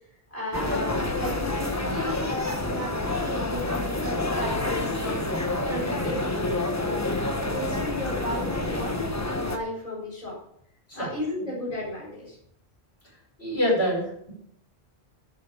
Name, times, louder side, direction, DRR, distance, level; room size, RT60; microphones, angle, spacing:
voice 1, 0.3-5.3 5.7-10.4 10.9-12.4, left 1 dB, 35° left, -5 dB, 4.7 m, -34 dB
sound 1, 0.5-9.6, left 2 dB, 15° left, 1.2 m, -28 dB
voice 2, 13.4-14.3, equal, 70° left, -3 dB, 6.3 m, -26 dB
11.5 x 8.1 x 6.7 m, 0.68 s
omnidirectional pair, 1.1 m